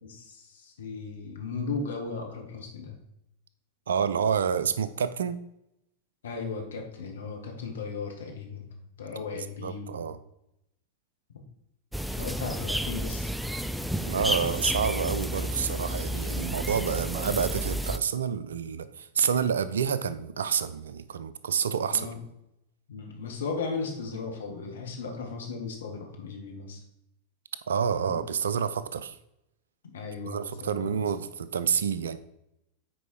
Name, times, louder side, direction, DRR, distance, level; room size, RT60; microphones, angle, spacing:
voice 1, 0.0-3.0 6.2-8.7 9.0-10.1 12.2-13.3 21.9-22.2 22.9-26.8 28.1-28.2 29.9-30.9, left 4 dB, 65° left, 1.8 m, -36 dB
voice 2, 3.9-5.4 9.3-10.2 14.0-22.1 27.7-29.2 30.2-32.2, right 7 dB, 65° right, 0.5 m, -28 dB
sound 1, 11.9-18.0, equal, 5° right, 0.4 m, -31 dB
9.2 x 4.7 x 4.5 m
figure-of-eight pair, 90°, 0 cm